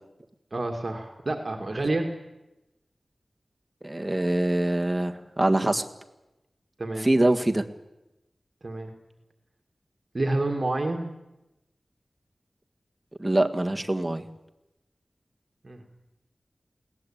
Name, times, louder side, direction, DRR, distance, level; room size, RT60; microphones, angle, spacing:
voice 1, 0.5-2.1 6.8-7.1 8.6-8.9 10.1-11.1 15.6-15.8, right 2 dB, 45° right, 3 dB, 2.2 m, -28 dB
voice 2, 3.8-5.8 7.0-7.6 13.2-14.2, right 1 dB, 15° right, 4 dB, 1.7 m, -24 dB
22.0 x 18.0 x 8.9 m, 0.96 s
wide cardioid pair, 80°, 0 cm